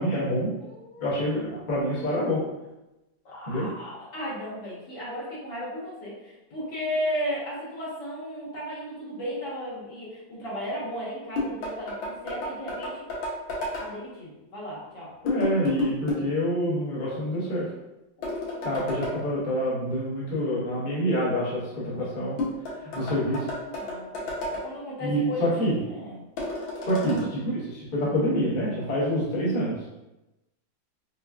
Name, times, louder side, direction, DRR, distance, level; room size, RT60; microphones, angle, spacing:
voice 1, 0.0-0.5 1.0-2.4 3.5-3.7 15.2-17.7 18.6-22.4 22.9-23.4 25.0-25.8 26.8-29.7, equal, 35° left, -7 dB, 0.8 m, -27 dB
voice 2, 0.6-1.3 3.3-13.0 13.8-15.1 18.2-18.3 18.6-19.1 22.0-22.1 23.0-26.2 27.0-27.3 28.0-28.2, equal, 70° left, -7 dB, 1.8 m, -35 dB
sound 1, 11.4-13.9 15.3-16.3 18.2-19.2 22.4-24.6 26.4-27.2, left 2 dB, 85° left, 1.5 m, -31 dB
4.8 x 2.2 x 2.3 m, 0.99 s
omnidirectional pair, 2.1 m